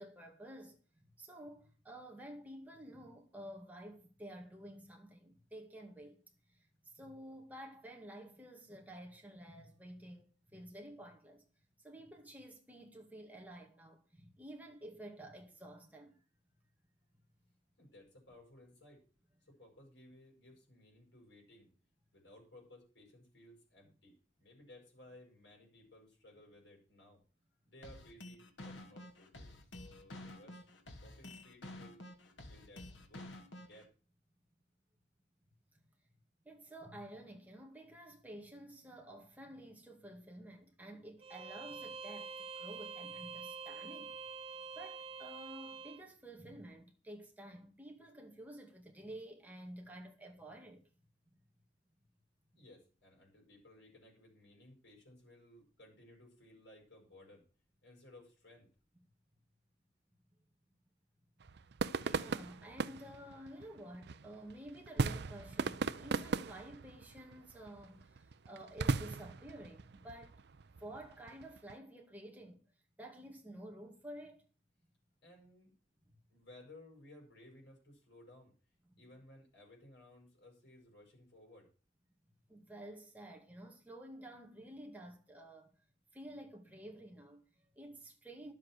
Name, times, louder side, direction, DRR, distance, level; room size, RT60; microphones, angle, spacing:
voice 1, 0.0-6.2 6.5-11.4 11.8-16.2 36.4-44.2 44.7-50.8 62.0-70.4 70.8-72.6 73.0-74.5 78.9-79.0 82.5-85.7 86.1-88.5, right 1 dB, 10° right, 2.1 m, -51 dB
voice 2, 17.8-19.0 19.4-21.7 22.1-24.1 24.4-27.2 27.7-30.6 31.0-32.1 32.5-33.3 33.6-33.9 52.5-57.4 57.8-58.7 75.2-75.7 76.3-78.5 79.0-81.7, left 1 dB, 65° left, 7.3 m, -59 dB
sound 1, 27.8-33.8, left 1 dB, 80° left, 2.1 m, -50 dB
Bowed string instrument, 41.2-46.0, right 5 dB, 30° right, 0.8 m, -46 dB
sound 2, 61.4-71.7, right 4 dB, 60° right, 0.5 m, -39 dB
11.0 x 7.8 x 6.5 m
head